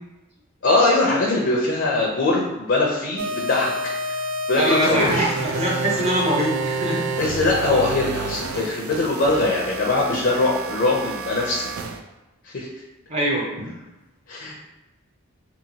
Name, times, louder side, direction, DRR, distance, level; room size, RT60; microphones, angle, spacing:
voice 1, 0.6-3.7 4.0-4.2 4.5-5.3 7.2-11.7 12.4-12.7 14.3-14.5, left 2 dB, 55° left, -3 dB, 0.5 m, -21 dB
sound 1, 3.2-12.0, right 2 dB, 85° right, 0.3 m, -29 dB
voice 2, 4.6-7.0 13.1-13.7, right 1 dB, 30° right, -3 dB, 0.6 m, -23 dB
2.8 x 2.6 x 2.7 m, 1.0 s
head